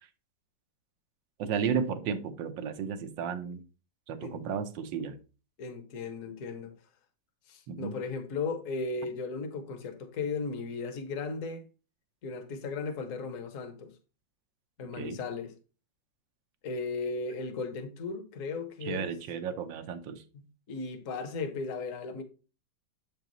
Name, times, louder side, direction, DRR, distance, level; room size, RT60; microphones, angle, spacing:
voice 1, 1.4-3.6 4.1-5.2 7.7-8.0 15.0-15.2 18.8-20.2, right 7 dB, 90° right, 1.5 m, -33 dB
voice 2, 5.6-6.7 7.5-11.6 12.2-13.9 14.8-15.5 16.6-19.2 20.3-22.2, left 4 dB, 50° left, 1.3 m, -36 dB
7.6 x 5.3 x 3.0 m
omnidirectional pair, 1.9 m